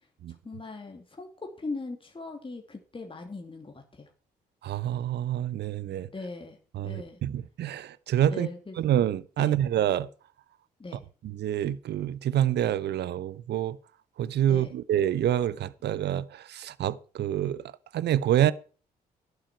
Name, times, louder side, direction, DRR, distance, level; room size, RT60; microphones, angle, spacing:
voice 1, 0.3-4.1 6.1-6.6 6.8-7.2 8.3-8.8 9.4-9.6 10.8-11.0 14.5-14.7, left 3 dB, 25° left, 2.9 m, -40 dB
voice 2, 4.6-6.1 6.7-8.5 8.8-10.1 11.2-13.8 14.2-17.6 17.9-18.5, right 11 dB, 55° right, 0.9 m, -27 dB
12.0 x 11.5 x 4.5 m
hypercardioid pair, 45°, 20 cm